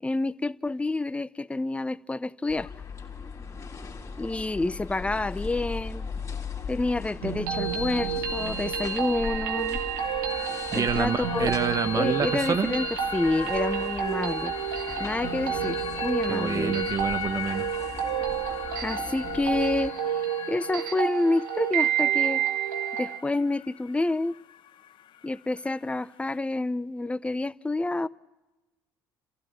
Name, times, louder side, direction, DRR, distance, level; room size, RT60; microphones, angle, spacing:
voice 1, 0.0-2.7 4.2-6.1 6.7-9.8 10.7-11.5 11.9-12.9 13.1-14.5 15.0-16.9 18.8-20.0 20.5-22.4 23.0-24.4 25.2-28.1, left 2 dB, 10° left, 0.6 m, -28 dB
sound 1, 2.5-19.9, left 5 dB, 30° left, 3.0 m, -39 dB
sound 2, 7.2-23.2, right 8 dB, 75° right, 1.3 m, -30 dB
sound 3, 10.0-26.4, left 11 dB, 50° left, 0.6 m, -40 dB
voice 2, 10.7-12.8 16.3-17.7, right 6 dB, 35° right, 1.0 m, -27 dB
29.0 x 15.5 x 7.5 m
hypercardioid pair, 55°, 10 cm